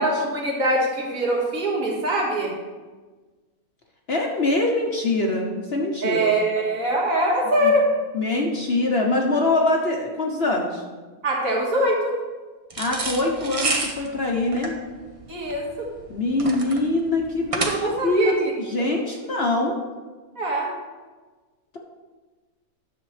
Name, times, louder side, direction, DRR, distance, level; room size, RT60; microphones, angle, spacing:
voice 1, 0.0-2.6 6.0-7.9 11.2-12.2 15.3-15.9 17.7-18.5 20.4-20.7, right 1 dB, 60° right, -3 dB, 2.2 m, -23 dB
voice 2, 4.1-6.3 7.6-7.7 8.1-10.8 12.8-14.7 16.1-19.7, left 2 dB, 50° left, 0 dB, 1.0 m, -23 dB
sound 1, 12.7-18.1, right 3 dB, 30° right, 0.6 m, -29 dB
10.5 x 6.9 x 3.3 m, 1.3 s
omnidirectional pair, 1.6 m